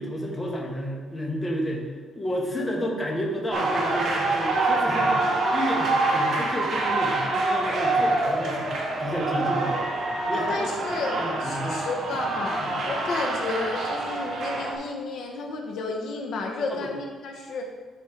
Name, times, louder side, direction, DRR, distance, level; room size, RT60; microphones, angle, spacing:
voice 1, 0.0-1.9 2.1-8.7 9.0-9.7 10.3-10.7 11.2-11.8 12.6-12.8 16.7-16.9, equal, 15° left, -2 dB, 1.3 m, -31 dB
sound 1, 3.5-14.7, right 2 dB, 45° right, 1.6 m, -26 dB
voice 2, 10.3-17.6, left 3 dB, 60° left, 1 dB, 0.9 m, -32 dB
11.5 x 4.3 x 4.4 m, 1.5 s
cardioid pair, 175°, 0 cm